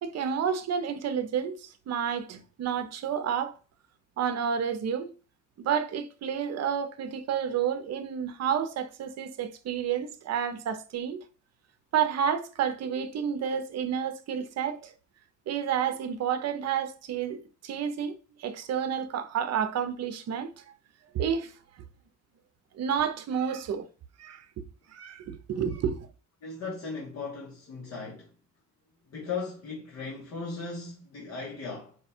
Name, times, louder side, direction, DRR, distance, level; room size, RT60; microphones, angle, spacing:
voice 1, 0.0-3.5 4.2-5.1 5.6-11.2 11.9-14.9 15.5-20.5 21.1-21.5 22.7-23.9 24.2-24.5 24.9-26.1, right 8 dB, 60° right, 0.7 m, -30 dB
voice 2, 26.4-28.3 29.1-32.0, left 4 dB, 60° left, 1.2 m, -37 dB
4.9 x 2.3 x 4.3 m
cardioid pair, 90°, 30 cm